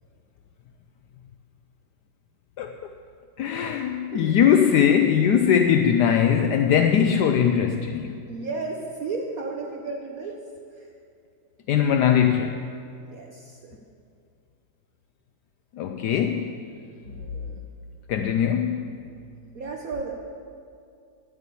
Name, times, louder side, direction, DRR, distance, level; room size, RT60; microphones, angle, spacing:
voice 1, 3.4-8.2 11.7-12.7 15.7-16.6 18.1-19.0, left 8 dB, 75° left, 6 dB, 1.1 m, -21 dB
voice 2, 8.2-10.4 10.7-10.9 13.1-13.8 17.1-17.6 19.5-20.1, right 3 dB, 55° right, 1 dB, 1.2 m, -34 dB
10.5 x 8.4 x 8.3 m, 2.5 s
omnidirectional pair, 2.0 m